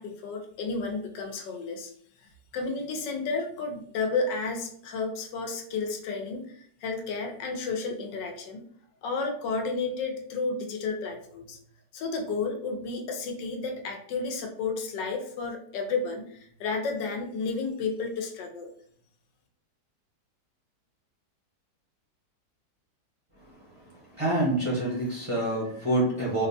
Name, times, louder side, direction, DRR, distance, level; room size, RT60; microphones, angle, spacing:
voice 1, 0.0-1.9 2.5-8.6 9.0-11.6 11.9-18.7, left 4 dB, 85° left, 3 dB, 1.4 m, -32 dB
voice 2, 24.2-26.5, right 1 dB, 30° right, -5 dB, 0.5 m, -26 dB
4.4 x 2.1 x 2.6 m, 0.63 s
omnidirectional pair, 1.9 m